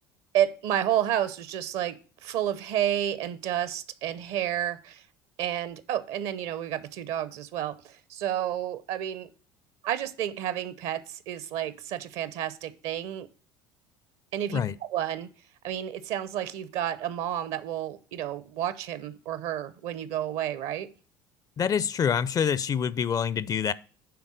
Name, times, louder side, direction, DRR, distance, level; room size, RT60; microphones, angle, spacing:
voice 1, 0.3-5.0 5.4-9.3 9.8-13.3 14.3-14.6 14.9-15.3 15.6-20.9, right 11 dB, 60° right, 0.8 m, -30 dB
voice 2, 21.6-23.7, left 7 dB, 35° left, 0.4 m, -26 dB
9.5 x 3.7 x 6.2 m
hypercardioid pair, 70°, 11 cm